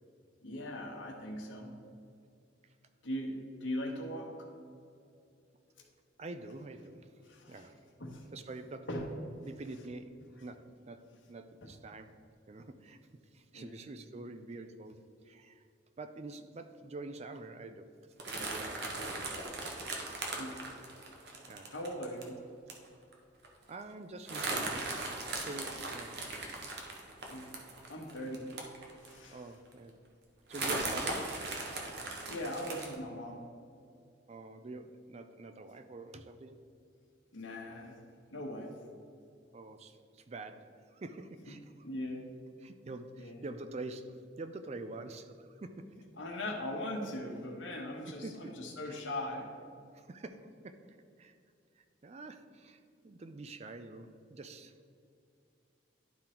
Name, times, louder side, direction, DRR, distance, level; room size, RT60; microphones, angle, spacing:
voice 1, 0.4-1.8 3.0-4.5 7.2-7.6 8.0-8.3 8.9-9.1 11.6-11.7 13.5-13.7 20.3-20.6 21.7-22.4 27.3-27.5 27.9-28.5 29.0-29.4 32.3-33.5 37.3-38.0 38.3-38.7 41.5-41.6 41.8-42.3 43.2-43.4 46.2-49.5, left 1 dB, 80° left, 1 dB, 1.3 m, -40 dB
voice 2, 6.2-7.8 8.3-8.9 9.4-12.1 12.5-13.0 13.3-15.7 16.0-17.9 18.4-19.3 21.5-21.7 23.7-25.1 25.4-26.2 29.3-30.0 30.5-31.4 34.3-36.6 39.5-41.9 42.6-46.0 48.1-48.5 48.8-49.0 49.9-51.4 51.8-54.9, right 2 dB, 35° right, 9 dB, 0.4 m, -46 dB
sound 1, 18.2-22.2 22.7-22.9 23.1-23.2 23.4-23.7 24.3-29.3 29.7-29.8 30.5-32.9, right 2 dB, 55° right, 1.1 m, -38 dB
11.5 x 3.8 x 4.4 m, 2.5 s
head